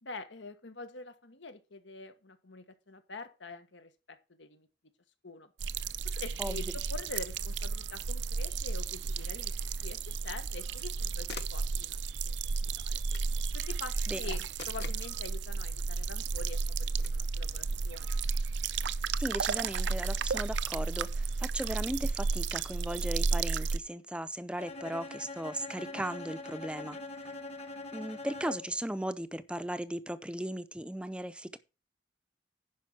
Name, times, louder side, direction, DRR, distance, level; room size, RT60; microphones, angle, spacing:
voice 1, 0.0-4.7 5.2-5.5 6.2-6.6 6.9-12.0 12.3-12.4 12.8-13.0 13.5-18.2, left 3 dB, 90° left, 1.5 m, -45 dB
sound 1, 5.6-23.8, right 4 dB, 75° right, 0.5 m, -33 dB
sound 2, 8.0-8.1 10.5-10.9 11.3-11.7 13.1-13.4 14.6-15.1 17.0-17.2, left 6 dB, 60° left, 0.8 m, -46 dB
voice 2, 19.2-27.0 27.9-31.6, right 1 dB, 5° right, 0.6 m, -37 dB
Bowed string instrument, 24.6-28.8, left 2 dB, 35° left, 1.3 m, -43 dB
10.5 x 5.5 x 6.0 m
head